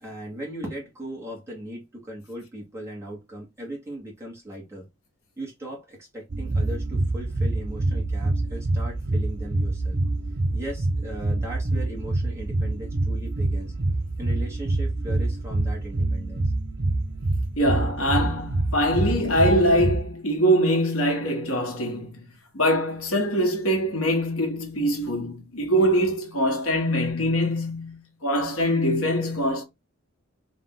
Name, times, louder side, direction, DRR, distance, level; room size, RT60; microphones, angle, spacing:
voice 1, 0.0-4.9 5.4-10.0 10.5-13.7 14.2-16.4, right 1 dB, 15° right, 1.3 m, -38 dB
sound 1, 6.3-20.0, right 2 dB, 55° right, 0.8 m, -26 dB
voice 2, 17.6-22.3 22.5-29.6, equal, 80° left, 1.5 m, -23 dB
3.6 x 2.5 x 3.8 m
head